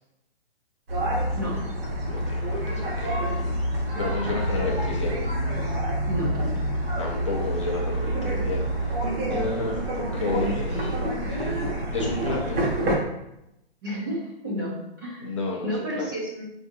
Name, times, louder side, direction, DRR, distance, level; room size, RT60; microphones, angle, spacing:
sound 1, 0.9-13.0, right 1 dB, 65° right, 1.3 m, -27 dB
voice 1, 1.4-2.0 6.1-6.7 13.8-15.3 15.6-16.4, equal, 20° right, -4 dB, 0.6 m, -31 dB
voice 2, 2.0-3.5 4.0-5.2 7.0-12.6 15.2-16.1, left 3 dB, 30° left, -2 dB, 0.5 m, -32 dB
5.1 x 2.5 x 2.5 m, 0.86 s
hypercardioid pair, 165°, 32 cm